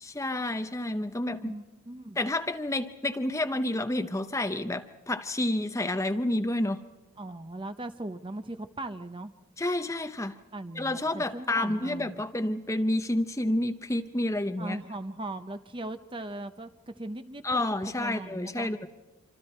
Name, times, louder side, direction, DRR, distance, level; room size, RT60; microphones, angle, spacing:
voice 1, 0.0-1.5 2.2-6.8 9.6-10.4 10.7-14.8 17.4-18.9, left 1 dB, 15° left, 8 dB, 0.7 m, -29 dB
voice 2, 1.4-2.2 7.2-9.3 10.5-12.2 14.6-17.6 18.0-18.7, right 2 dB, 20° right, 9 dB, 0.8 m, -39 dB
26.5 x 26.0 x 4.4 m, 1.2 s
head